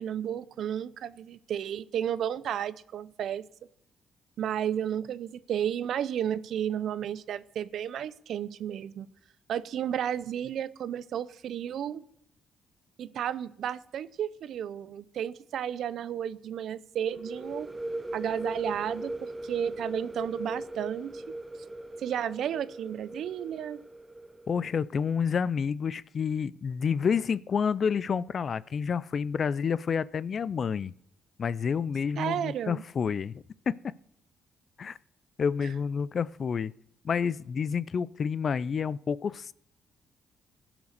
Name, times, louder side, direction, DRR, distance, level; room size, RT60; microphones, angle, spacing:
voice 1, 0.0-3.5 4.4-9.1 9.5-12.0 13.0-17.7 18.1-21.2 22.0-23.8 32.2-32.8 35.6-35.7, right 9 dB, 70° right, 17 dB, 0.5 m, -33 dB
sound 1, 17.1-24.7, right 1 dB, 15° right, 0.6 m, -39 dB
voice 2, 24.5-30.9 31.4-33.7 34.8-35.0 35.4-36.7 37.0-39.5, left 6 dB, 50° left, 20 dB, 0.4 m, -29 dB
17.0 x 6.0 x 6.6 m, 0.74 s
cardioid pair, 80°, 0 cm